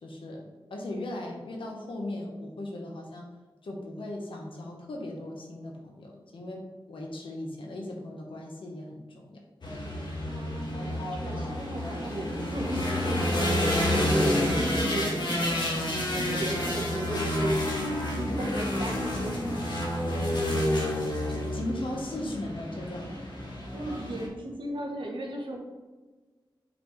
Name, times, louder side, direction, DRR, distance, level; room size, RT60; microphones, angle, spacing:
voice 1, 0.0-0.4 0.7-3.3 3.6-6.6 6.9-9.4 21.3-23.2, left 1 dB, 80° left, 0 dB, 1.3 m, -38 dB
sound 1, 9.6-24.3, left 1 dB, 60° left, 1.5 m, -29 dB
voice 2, 10.2-13.3 13.6-15.2 16.1-17.5 17.8-19.4 20.7-20.9 23.7-25.6, right 1 dB, 70° right, 0 dB, 1.3 m, -37 dB
7.5 x 4.2 x 3.3 m, 1.3 s
cardioid pair, 50°, 9 cm